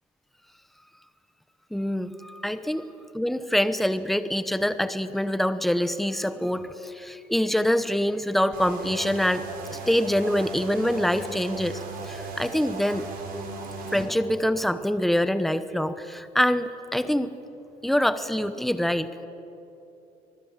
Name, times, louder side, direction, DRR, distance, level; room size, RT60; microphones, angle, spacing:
voice 1, 1.7-2.8 3.1-9.4 9.7-13.1 13.9-17.3 17.8-19.1, equal, ahead, 12 dB, 1.0 m, -25 dB
sound 1, 8.5-14.0, right 3 dB, 60° right, 5.7 m, -37 dB
25.0 x 19.5 x 7.5 m, 3.0 s
cardioid pair, 110°, 17 cm